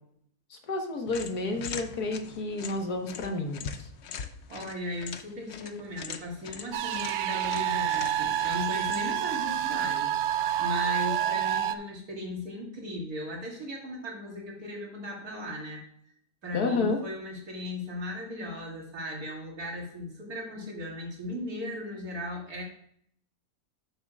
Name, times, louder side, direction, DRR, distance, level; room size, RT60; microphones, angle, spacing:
voice 1, 0.5-3.9 16.5-17.0, left 3 dB, 75° left, 3 dB, 2.0 m, -30 dB
sound 1, 1.1-9.3, left 6 dB, 55° left, 0.8 m, -42 dB
voice 2, 4.5-10.1 10.6-15.8 16.4-22.6, left 1 dB, 70° right, -2 dB, 3.1 m, -37 dB
sound 2, 6.7-11.7, right 10 dB, 90° right, 1.2 m, -28 dB
11.5 x 7.4 x 2.5 m, 0.67 s
omnidirectional pair, 1.7 m